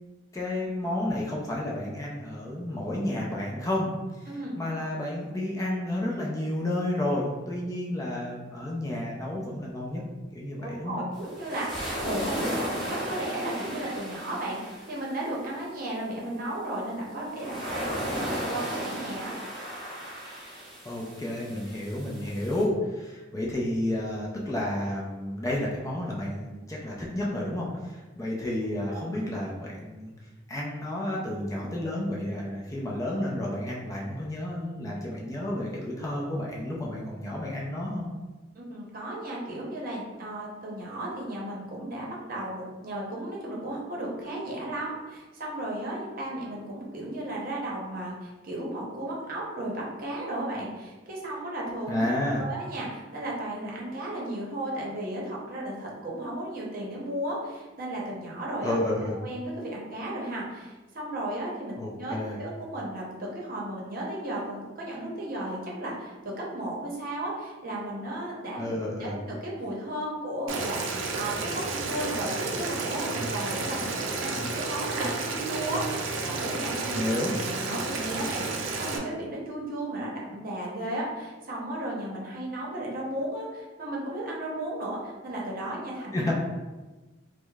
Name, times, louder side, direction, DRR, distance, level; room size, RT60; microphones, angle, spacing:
voice 1, 0.3-3.9 4.6-10.0 10.3-11.0 20.8-30.1 30.5-38.1 51.9-52.4 58.6-59.2 61.8-62.4 68.6-69.2 76.9-77.4 86.1-86.3, left 1 dB, 15° left, -3 dB, 0.4 m, -31 dB
voice 2, 4.3-4.6 10.6-19.4 38.5-52.0 52.3-58.8 59.2-68.7 69.0-77.2 77.5-86.3, right 1 dB, 50° right, -4 dB, 0.8 m, -34 dB
sound 1, 11.1-15.2 17.3-22.6, equal, ahead, 1.2 m, -35 dB
Boiling, 70.5-79.0, right 3 dB, 85° right, 0.5 m, -31 dB
4.8 x 2.1 x 2.3 m, 1.2 s
head